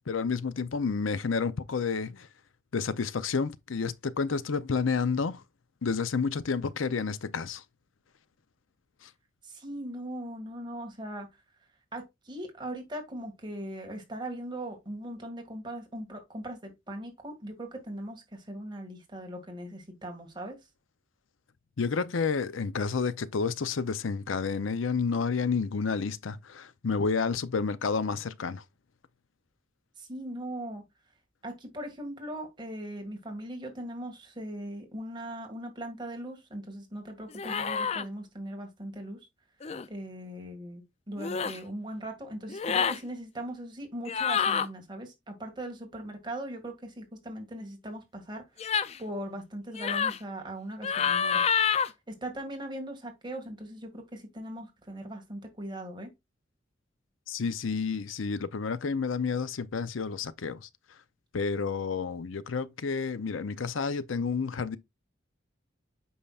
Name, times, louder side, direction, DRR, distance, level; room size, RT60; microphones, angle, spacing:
voice 1, 0.0-2.3 2.7-5.4 5.8-7.6 9.0-9.1 21.8-28.6 57.3-60.7 61.3-64.8, left 5 dB, 85° left, 0.6 m, -30 dB
voice 2, 9.4-11.3 11.9-20.6 30.0-30.8 31.4-39.2 39.9-51.4 52.1-56.1, right 1 dB, 25° right, 2.0 m, -39 dB
sound 1, 37.3-38.0 39.6-39.9 41.2-41.6 42.5-43.0 44.1-44.7 48.6-49.0 49.8-50.2 50.8-51.9, left 7 dB, 30° left, 0.4 m, -28 dB
8.6 x 5.6 x 2.4 m
head